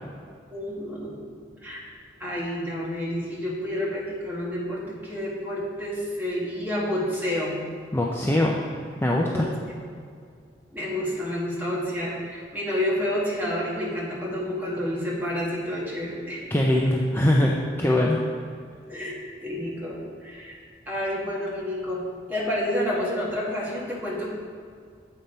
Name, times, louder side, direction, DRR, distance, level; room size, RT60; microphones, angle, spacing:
voice 1, 0.5-1.2 1.6-1.8 2.2-7.6 9.3-9.5 10.7-16.4 18.9-20.6 20.9-24.3, left 1 dB, 10° right, -5 dB, 1.5 m, -29 dB
voice 2, 7.9-8.6 9.0-9.5 16.5-17.5 17.8-18.2, left 1 dB, 15° left, -2 dB, 0.5 m, -21 dB
7.8 x 5.3 x 4.2 m, 2.2 s
head